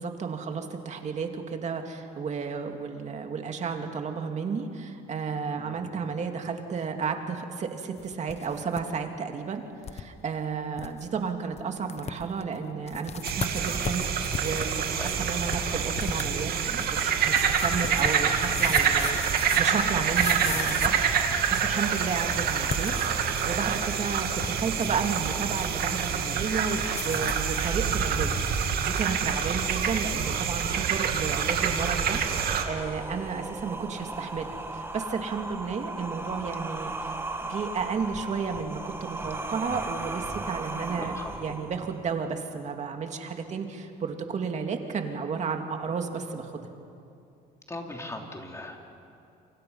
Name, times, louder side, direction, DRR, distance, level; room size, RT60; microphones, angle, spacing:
voice 1, 0.0-9.6 9.9-21.1 21.5-37.1 37.4-46.7, right 5 dB, 45° right, 4 dB, 2.5 m, -32 dB
voice 2, 5.6-5.9 15.0-15.2 22.1-22.5 24.0-24.3 40.8-41.3 47.7-48.8, left 2 dB, 15° left, 1 dB, 3.2 m, -40 dB
sound 1, 8.0-8.8 9.1-9.2 9.8-10.0 10.5-10.6 10.8-11.1 11.6-11.7 11.9-12.4 12.9-21.7 22.5-23.8 24.2-25.1 26.8-27.5, left 7 dB, 40° left, 1.1 m, -37 dB
sound 2, 13.2-32.6, right 7 dB, 65° right, 2.4 m, -27 dB
sound 3, 29.1-42.1, right 2 dB, 15° right, 1.6 m, -38 dB
29.0 x 25.5 x 5.7 m, 2.6 s
cardioid pair, 110°, 17 cm